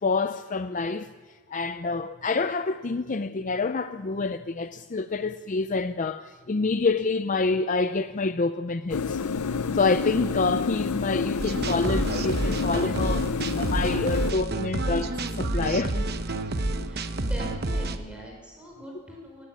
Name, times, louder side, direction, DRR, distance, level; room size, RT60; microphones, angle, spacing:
voice 1, 0.0-1.1 1.5-9.2 9.7-16.1, left 3 dB, 35° left, 0.5 m, -27 dB
Fluoresent Light Hum and Refrigerator, 8.9-14.3, left 5 dB, 90° left, 0.6 m, -29 dB
sound 1, 11.4-18.0, right 2 dB, 45° right, 1.0 m, -29 dB
voice 2, 16.8-19.5, equal, 5° right, 6.1 m, -42 dB
18.5 x 16.5 x 8.9 m
head